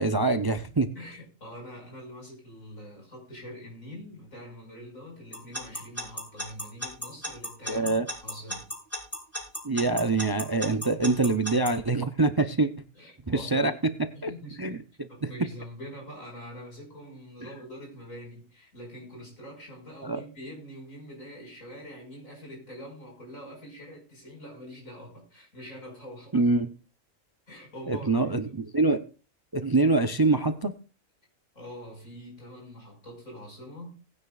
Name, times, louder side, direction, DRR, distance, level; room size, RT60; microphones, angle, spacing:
voice 1, 0.0-0.9 7.7-8.1 9.6-12.7 13.3-13.7 14.2-14.3 14.6-15.3 20.0-20.2 26.3-26.7 27.9-29.0 29.5-30.7, right 3 dB, 25° right, 0.5 m, -25 dB
voice 2, 1.0-8.7 12.9-13.7 14.1-14.8 15.1-26.5 27.5-28.3 31.5-34.0, equal, 80° left, 6.0 m, -44 dB
Alarm / Clock, 5.3-11.7, equal, 10° left, 4.3 m, -33 dB
19.0 x 9.7 x 2.4 m
omnidirectional pair, 1.4 m